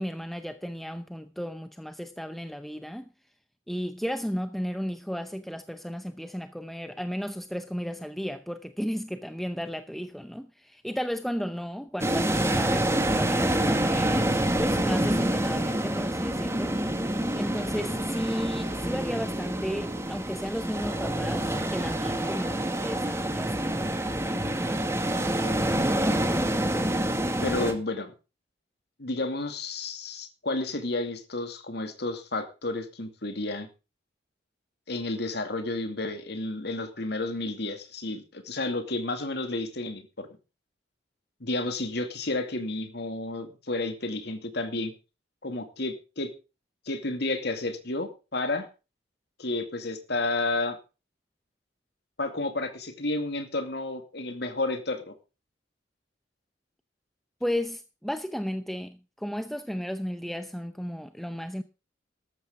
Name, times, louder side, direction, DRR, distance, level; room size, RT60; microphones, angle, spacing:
voice 1, 0.0-3.1 3.7-16.8 17.3-23.5 57.4-61.6, equal, ahead, 0.7 m, -34 dB
sound 1, 12.0-27.7, right 1 dB, 15° right, 2.1 m, -27 dB
voice 2, 25.4-26.1 27.4-28.1 29.0-33.7 34.9-40.3 41.4-44.9 45.4-46.3 46.9-48.7 49.4-50.8 52.2-55.1, left 2 dB, 65° left, 2.4 m, -31 dB
14.0 x 12.0 x 3.7 m
head